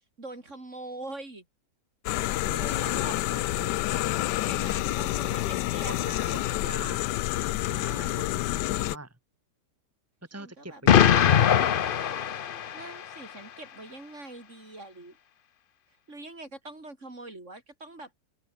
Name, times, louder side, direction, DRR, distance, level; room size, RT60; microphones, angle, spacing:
voice 1, 0.2-1.4 2.6-3.5 4.4-6.5 7.6-8.2 10.3-10.8 12.7-15.2 16.1-18.1, right 2 dB, 45° right, 4.6 m, -43 dB
sound 1, 2.1-9.0, left 16 dB, 85° left, 1.2 m, -28 dB
voice 2, 2.5-4.1 5.0-7.1 7.7-9.2 10.3-11.7, right 2 dB, 10° right, 2.7 m, -44 dB
Explosion, 10.9-13.0, left 9 dB, 65° left, 0.5 m, -21 dB
open air
omnidirectional pair, 1.8 m